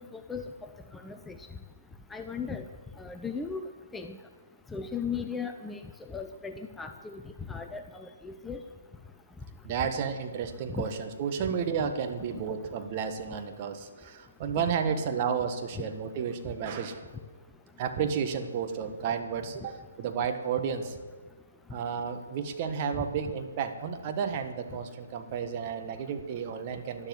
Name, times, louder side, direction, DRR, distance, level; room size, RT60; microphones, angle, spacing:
voice 1, 0.1-0.4 1.0-1.3 2.1-2.6 3.0-3.7 3.9-4.2 4.7-5.8 6.1-7.2 7.5-8.6 10.7-10.8 11.4-11.5 15.8-15.9, left 5 dB, 5° left, 6 dB, 0.7 m, -36 dB
voice 2, 9.6-17.1 17.8-21.0 21.7-27.1, right 7 dB, 35° right, 6 dB, 1.5 m, -32 dB
12.0 x 11.5 x 7.9 m, 1.4 s
figure-of-eight pair, 135°, 0 cm